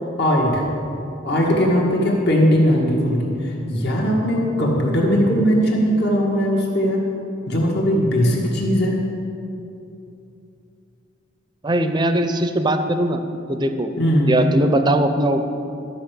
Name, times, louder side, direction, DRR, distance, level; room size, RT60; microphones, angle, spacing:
voice 1, 0.2-0.6 1.2-7.0 7.5-9.0 14.0-14.4, equal, 60° left, -2 dB, 2.0 m, -19 dB
voice 2, 11.6-13.2 13.5-13.9 14.3-15.4, right 1 dB, 20° right, 8 dB, 0.6 m, -20 dB
12.5 x 5.7 x 7.5 m, 2.7 s
head